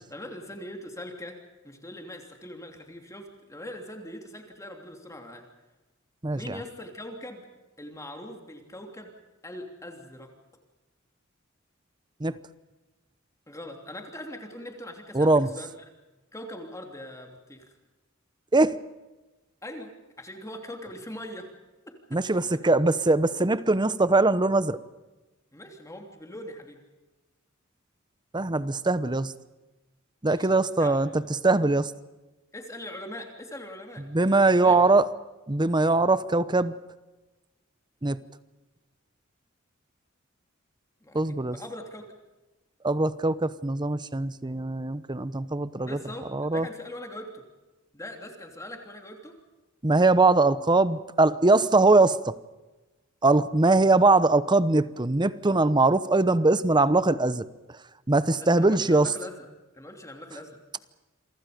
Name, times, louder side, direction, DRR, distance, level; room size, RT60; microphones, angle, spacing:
voice 1, 0.1-1.4 1.6-5.4 6.3-7.4 7.8-9.1 9.4-10.3 13.5-15.3 15.6-15.7 16.3-17.7 19.6-19.9 20.2-21.5 25.5-26.8 30.3-30.5 30.8-31.0 32.5-34.0 34.4-34.8 41.0-42.1 45.8-47.4 47.9-49.4 58.4-59.5 59.7-60.8, left 1 dB, 15° left, 3 dB, 3.1 m, -41 dB
voice 2, 6.2-6.6 12.2-12.4 15.1-15.5 18.5-18.8 22.1-24.8 28.3-29.3 30.2-31.9 34.1-35.1 35.5-36.7 38.0-38.2 41.1-41.6 42.8-46.0 46.3-46.7 49.8-52.3 53.2-57.5 58.1-59.1, right 2 dB, 20° right, 15 dB, 0.9 m, -22 dB
28.5 x 24.5 x 5.2 m, 1.1 s
head